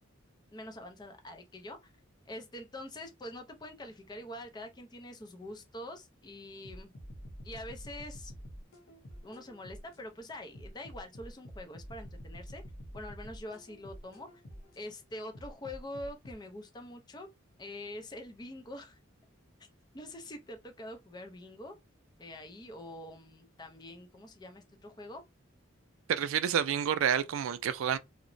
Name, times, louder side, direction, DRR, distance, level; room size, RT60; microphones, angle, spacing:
voice 1, 0.5-1.9 2.3-6.9 7.4-8.3 9.2-12.6 12.9-14.4 14.8-17.3 17.6-19.0 19.9-21.7 22.2-25.2, left 1 dB, 20° left, 0.4 m, -45 dB
shimmer and stumble xtra, 6.6-10.0 10.5-14.8 15.3-16.3, equal, 80° left, 0.8 m, -47 dB
voice 2, 26.1-28.0, right 9 dB, 80° right, 0.3 m, -29 dB
2.9 x 2.0 x 2.5 m
head